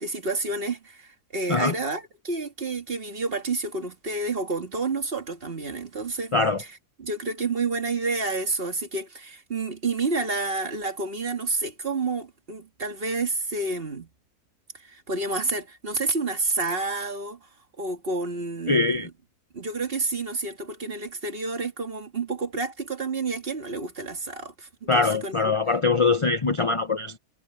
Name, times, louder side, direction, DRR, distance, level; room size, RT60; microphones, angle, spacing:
voice 1, 0.0-14.1 14.7-17.5 17.8-19.1 19.5-25.5, right 3 dB, 40° right, 2.0 m, -29 dB
voice 2, 18.7-19.1 24.9-27.2, left 3 dB, 40° left, 0.4 m, -22 dB
omnidirectional pair, 1.6 m